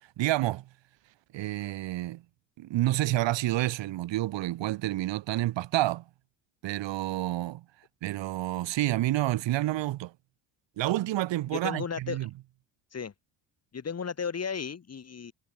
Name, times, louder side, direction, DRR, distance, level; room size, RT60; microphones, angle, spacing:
voice 1, 0.2-0.6 1.3-2.2 2.6-6.0 6.6-7.6 8.0-10.1 10.8-12.3, right 15 dB, 70° right, 4.1 m, -29 dB
voice 2, 11.5-12.2 12.9-13.1 13.7-15.3, left 6 dB, 35° left, 5.1 m, -34 dB
cardioid pair, 105°, 46 cm